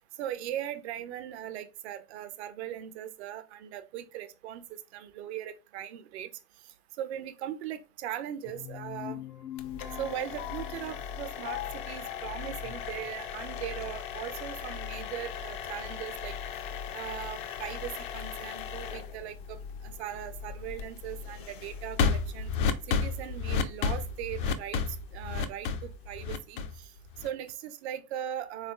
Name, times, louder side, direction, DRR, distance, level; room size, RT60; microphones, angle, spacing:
voice 1, 0.2-4.6 4.9-6.3 7.0-9.2 10.0-16.3 16.9-22.5 22.9-24.8 25.1-26.9 27.2-28.7, right 11 dB, 45° right, 0.5 m, -39 dB
sound 1, 8.4-13.6, left 12 dB, 65° left, 0.7 m, -42 dB
sound 2, 9.6-27.5, left 5 dB, 40° left, 0.4 m, -35 dB
3.6 x 3.3 x 2.2 m
figure-of-eight pair, 90°, 46 cm